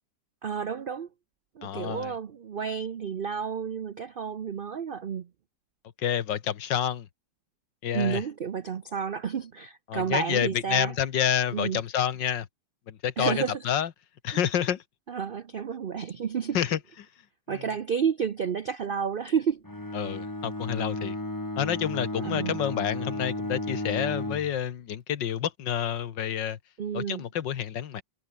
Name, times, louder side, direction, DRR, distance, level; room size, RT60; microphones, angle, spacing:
voice 1, 0.4-1.1 1.6-5.3 7.9-10.9 11.5-11.8 13.2-13.6 15.1-16.6 17.5-19.6 22.2-22.6 26.8-27.2, right 7 dB, 85° right, 0.4 m, -31 dB
voice 2, 1.6-2.1 6.0-7.1 7.8-8.2 9.9-12.5 12.9-13.9 14.2-14.8 16.5-16.8 17.5-17.7 19.9-21.2 21.6-26.6 26.9-28.0, left 9 dB, 90° left, 1.9 m, -28 dB
Bowed string instrument, 19.6-24.5, left 1 dB, 10° left, 2.0 m, -33 dB
omnidirectional pair, 1.9 m